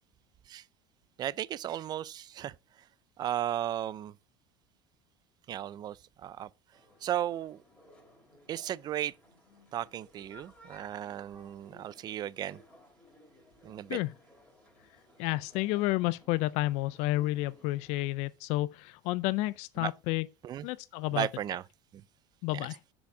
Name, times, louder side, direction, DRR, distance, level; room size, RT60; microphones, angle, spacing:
voice 1, 1.2-2.5 3.2-4.1 5.5-6.5 7.0-7.6 8.5-9.1 9.7-12.6 13.6-14.0 19.8-19.9 20.4-20.7 21.1-21.6 21.9-22.0 22.5-22.7, right 11 dB, 35° right, 0.4 m, -35 dB
sound 1, 6.7-18.1, left 1 dB, 10° left, 3.2 m, -59 dB
voice 2, 15.2-20.3 20.6-21.3 22.4-22.8, left 18 dB, 65° left, 0.4 m, -30 dB
6.9 x 5.0 x 4.8 m
cardioid pair, 130°, 12 cm